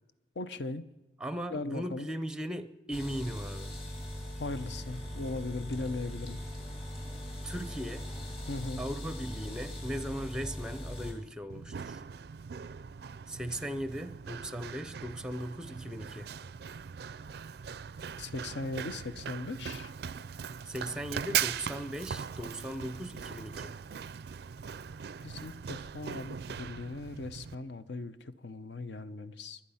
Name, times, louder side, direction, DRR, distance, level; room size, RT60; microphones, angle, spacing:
voice 1, 0.4-0.9 1.5-2.1 4.2-6.4 8.5-8.8 18.2-19.9 25.2-29.6, left 2 dB, 65° left, 13 dB, 0.7 m, -38 dB
voice 2, 1.2-3.7 7.4-8.1 8.8-12.0 13.3-16.3 20.7-23.8, equal, 5° right, 12 dB, 0.6 m, -38 dB
sound 1, 2.9-11.1, equal, 30° left, 2.7 m, -40 dB
Run, 11.5-27.5, right 8 dB, 55° right, 0.4 m, -40 dB
22.0 x 8.7 x 5.6 m, 1.1 s
head